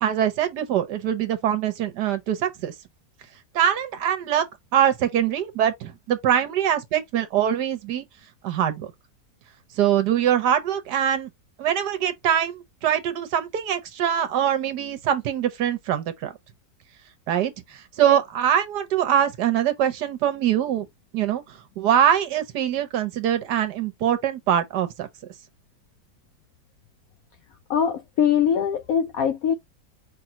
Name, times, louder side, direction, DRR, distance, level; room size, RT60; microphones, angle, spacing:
voice 1, 0.0-2.7 3.5-4.4 4.7-8.0 8.4-8.9 9.8-11.3 11.6-16.3 17.3-20.9 21.1-21.4 21.8-25.1, right 10 dB, 75° right, 1.4 m, -23 dB
voice 2, 27.7-29.5, left 8 dB, 70° left, 0.9 m, -22 dB
5.0 x 3.6 x 2.8 m
omnidirectional pair, 1.8 m